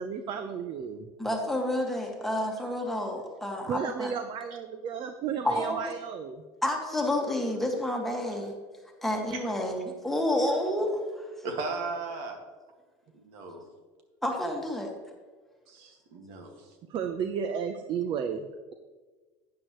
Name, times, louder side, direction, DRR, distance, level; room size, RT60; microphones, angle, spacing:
voice 1, 0.0-1.1 3.7-6.4 16.9-18.7, right 7 dB, 50° right, 8 dB, 0.7 m, -33 dB
voice 2, 1.2-4.1 5.4-5.9 6.6-8.6 9.0-11.3 14.2-14.9, left 1 dB, ahead, 0 dB, 1.8 m, -29 dB
voice 3, 11.4-12.4 13.1-13.6 15.7-16.7, right 3 dB, 70° right, 3 dB, 2.0 m, -36 dB
11.0 x 9.5 x 3.1 m, 1.3 s
supercardioid pair, 110°, 11 cm